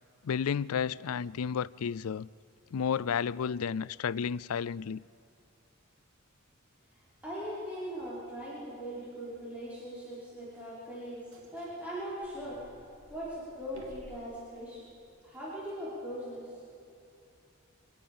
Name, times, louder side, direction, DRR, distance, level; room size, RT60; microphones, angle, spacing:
voice 1, 0.2-2.3 2.7-5.0, left 7 dB, 90° left, 0.4 m, -32 dB
voice 2, 7.2-11.2 11.5-12.6 13.1-14.8 15.2-16.5, equal, 5° right, 5.4 m, -40 dB
sound 1, 10.5-10.7 11.3-14.6 15.0-15.7, equal, 60° right, 3.3 m, -52 dB
25.0 x 18.0 x 7.1 m
head